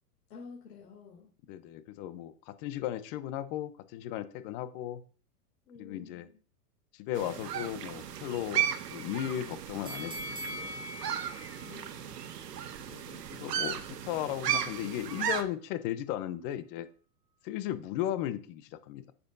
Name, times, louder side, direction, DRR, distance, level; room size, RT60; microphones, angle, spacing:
voice 1, 0.3-1.3 5.7-6.4 11.6-12.2, left 5 dB, 75° left, -3 dB, 2.7 m, -50 dB
voice 2, 1.5-5.0 5.8-6.3 6.9-10.9 12.9-16.9 17.4-19.0, left 12 dB, 35° left, 13 dB, 0.7 m, -36 dB
sound 1, 7.1-15.4, right 9 dB, 90° right, 1.2 m, -35 dB
sound 2, 9.9-13.0 13.4-13.5, left 1 dB, 10° right, 1.3 m, -43 dB
9.6 x 6.9 x 2.7 m, 0.39 s
hypercardioid pair, 135°, 47 cm